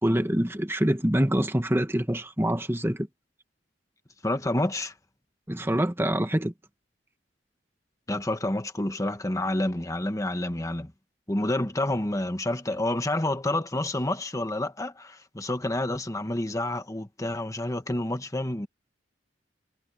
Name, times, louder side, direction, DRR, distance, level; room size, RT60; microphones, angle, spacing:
voice 1, 0.0-3.1 5.5-6.5, right 1 dB, 15° right, 1.4 m, -25 dB
voice 2, 4.2-4.9 8.1-10.9 11.3-18.7, left 1 dB, 20° left, 1.4 m, -29 dB
head